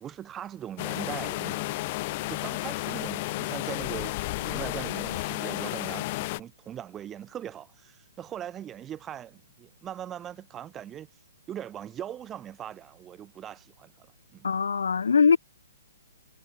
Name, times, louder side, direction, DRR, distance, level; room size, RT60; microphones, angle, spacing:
voice 1, 0.0-11.1 11.5-14.5, right 10 dB, 15° right, 1.5 m, -40 dB
sound 1, 0.8-6.4, left 21 dB, 30° left, 1.0 m, -32 dB
voice 2, 14.4-15.4, left 5 dB, 90° left, 0.4 m, -21 dB
hypercardioid pair, 165°, 0 cm